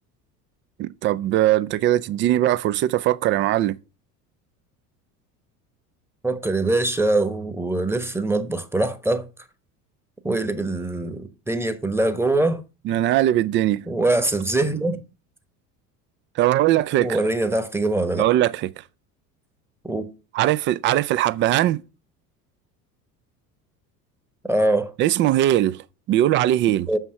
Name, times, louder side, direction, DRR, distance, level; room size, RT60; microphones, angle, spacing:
voice 1, 0.8-3.8 12.8-13.9 16.4-17.2 18.2-18.8 20.3-21.8 25.0-26.9, right 13 dB, 25° right, 0.3 m, -20 dB
voice 2, 6.2-9.2 10.2-12.6 13.9-15.0 17.0-18.2 19.8-20.1 24.5-24.9 26.9-27.0, right 2 dB, 5° right, 1.1 m, -23 dB
7.0 x 5.6 x 5.6 m
figure-of-eight pair, 70°, 48 cm